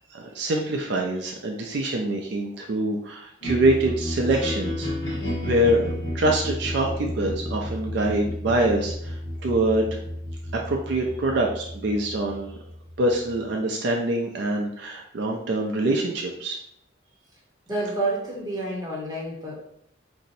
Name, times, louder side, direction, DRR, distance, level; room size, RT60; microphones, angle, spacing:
voice 1, 0.1-4.9 5.4-5.9 6.1-9.9 10.6-12.5 13.0-16.6, right 1 dB, 60° right, 1 dB, 0.4 m, -25 dB
sound 1, 3.4-13.5, left 1 dB, 65° left, 1.0 m, -32 dB
voice 2, 17.7-19.6, right 2 dB, 20° right, -3 dB, 0.8 m, -29 dB
2.6 x 2.0 x 4.0 m, 0.71 s
head